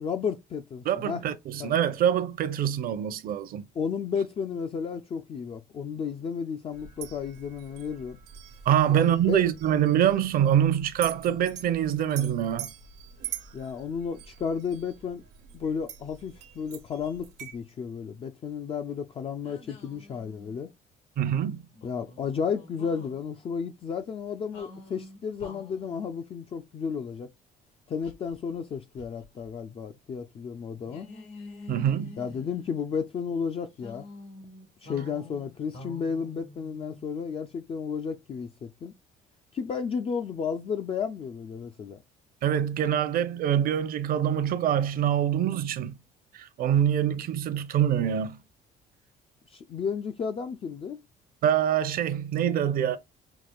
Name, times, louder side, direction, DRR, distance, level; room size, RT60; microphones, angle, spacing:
voice 1, 0.0-1.2 1.6-1.8 3.8-8.2 8.9-9.4 13.5-15.2 15.5-20.7 21.8-27.3 27.9-31.1 32.2-34.1 34.8-38.9 39.5-42.0 49.5-51.0, left 6 dB, 35° left, 0.3 m, -33 dB
voice 2, 0.8-3.6 8.7-12.7 21.2-21.6 31.7-32.2 42.4-46.0 46.3-48.4 51.4-53.0, right 10 dB, 60° right, 0.7 m, -25 dB
sound 1, 6.7-17.5, right 9 dB, 85° right, 1.0 m, -44 dB
sound 2, 19.4-20.7 21.7-23.2 24.5-26.1 28.0-29.5 29.8-29.9 30.8-33.0 33.8-37.5, left 2 dB, 90° left, 1.8 m, -48 dB
5.8 x 2.4 x 2.2 m
cardioid pair, 110°, 17 cm